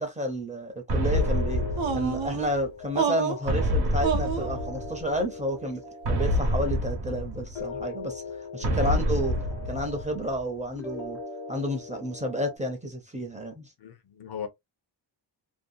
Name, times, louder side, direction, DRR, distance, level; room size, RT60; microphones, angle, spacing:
voice 1, 0.0-1.6 1.9-5.8 6.1-8.2 8.5-9.3 9.7-11.2 11.5-13.6, equal, 15° right, 0.5 m, -31 dB
sound 1, 0.9-2.7 3.5-5.2 6.0-7.8 8.6-10.4, equal, 60° right, 0.9 m, -28 dB
sound 2, 1.1-12.6, left 4 dB, 85° left, 1.0 m, -41 dB
sound 3, 1.8-2.5 2.9-3.5 4.0-4.5, right 6 dB, 80° right, 0.7 m, -28 dB
voice 2, 8.6-9.1 13.8-14.5, left 6 dB, 55° left, 0.6 m, -38 dB
2.7 x 2.1 x 2.5 m
wide cardioid pair, 175°, 46 cm